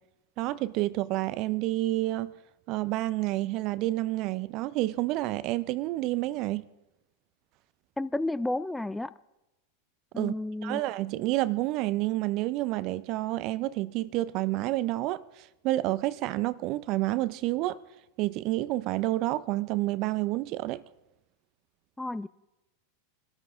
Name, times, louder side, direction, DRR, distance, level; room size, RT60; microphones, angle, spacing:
voice 1, 0.4-2.3 2.7-6.7 10.2-10.3 10.6-17.8 18.2-20.8, right 17 dB, 45° right, 0.6 m, -29 dB
voice 2, 8.0-9.1 10.1-10.8 22.0-22.3, left 2 dB, 5° left, 0.4 m, -31 dB
24.5 x 13.5 x 3.7 m
figure-of-eight pair, 90°, 0 cm